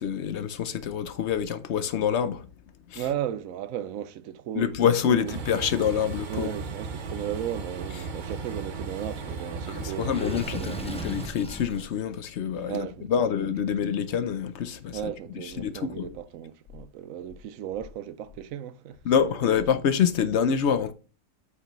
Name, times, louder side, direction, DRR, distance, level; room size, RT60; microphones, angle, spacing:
voice 1, 0.0-2.4 2.9-3.0 4.5-6.5 9.7-15.0 15.6-16.1 19.1-20.9, left 8 dB, 65° left, 0.9 m, -26 dB
voice 2, 2.9-4.8 5.0-5.4 6.3-11.1 12.7-13.3 13.6-13.7 14.9-19.6, right 10 dB, 85° right, 1.0 m, -36 dB
Train, 5.3-11.3, right 4 dB, 45° right, 0.8 m, -36 dB
Water / Sink (filling or washing), 10.1-11.9, left 1 dB, 10° left, 0.4 m, -38 dB
8.1 x 5.7 x 3.0 m
omnidirectional pair, 1.4 m